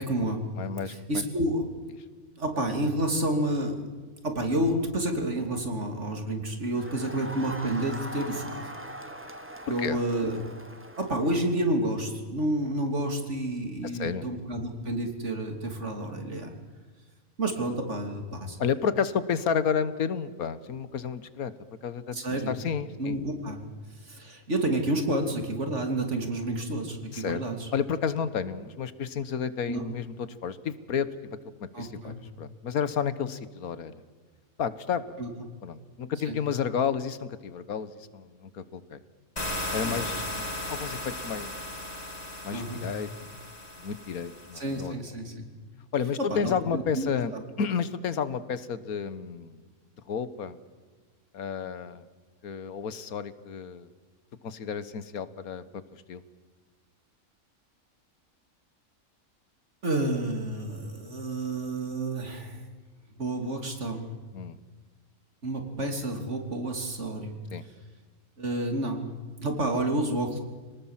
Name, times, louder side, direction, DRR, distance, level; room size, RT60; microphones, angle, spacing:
voice 1, 0.0-0.4 0.9-1.6 2.4-3.8 4.2-8.7 9.7-10.4 11.0-16.5 17.4-18.6 22.1-22.5 23.0-23.6 23.9-27.7 29.7-29.8 31.7-32.2 35.2-35.3 36.3-36.4 39.8-40.0 42.5-42.8 44.5-45.4 46.2-47.4 59.8-62.6 63.2-64.0 65.4-67.3 68.4-69.0 69.4-70.4, right 1 dB, 55° right, 4 dB, 3.3 m, -30 dB
voice 2, 0.6-1.2 9.7-10.0 13.9-14.3 18.6-21.5 21.8-22.2 22.5-23.2 27.1-27.4 27.7-34.0 34.6-35.2 35.6-39.0 39.7-41.5 42.4-43.3 43.8-45.0 45.9-47.3 47.6-49.6 50.1-50.6 51.3-52.1 52.4-53.9 54.4-55.6 55.9-56.2 64.3-64.6 67.5-67.7, left 7 dB, 85° left, 14 dB, 1.6 m, -31 dB
Crowd, 6.7-11.6, right 1 dB, 10° right, 1.5 m, -41 dB
sound 1, 39.4-44.9, left 1 dB, 25° left, 3.6 m, -36 dB
27.0 x 19.0 x 7.4 m, 1.4 s
omnidirectional pair, 1.5 m